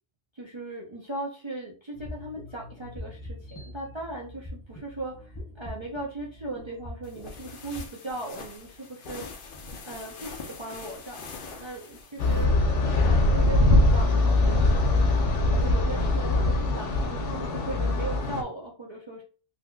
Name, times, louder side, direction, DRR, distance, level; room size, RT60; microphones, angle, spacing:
voice 1, 0.3-9.3 9.8-15.1 15.5-19.2, right 2 dB, 30° right, -3 dB, 0.7 m, -38 dB
sound 1, 1.9-7.8, left 1 dB, 20° left, 0.8 m, -43 dB
sound 2, 7.0-12.5, left 4 dB, 55° left, 0.8 m, -43 dB
sound 3, 12.2-18.4, left 2 dB, 85° left, 1.1 m, -22 dB
4.0 x 2.8 x 2.3 m, 0.37 s
omnidirectional pair, 1.2 m